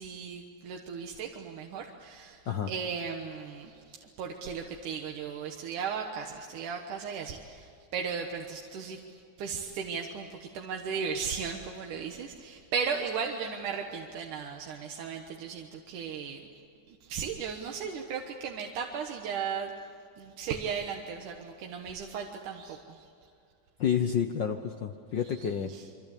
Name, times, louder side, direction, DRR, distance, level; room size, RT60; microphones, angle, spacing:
voice 1, 0.0-16.5 16.9-19.7 20.2-23.1 25.2-25.9, right 6 dB, 90° right, 2 dB, 2.9 m, -36 dB
voice 2, 23.8-25.7, left 8 dB, 75° left, 6 dB, 1.0 m, -29 dB
26.5 x 25.0 x 8.5 m, 2.4 s
omnidirectional pair, 3.5 m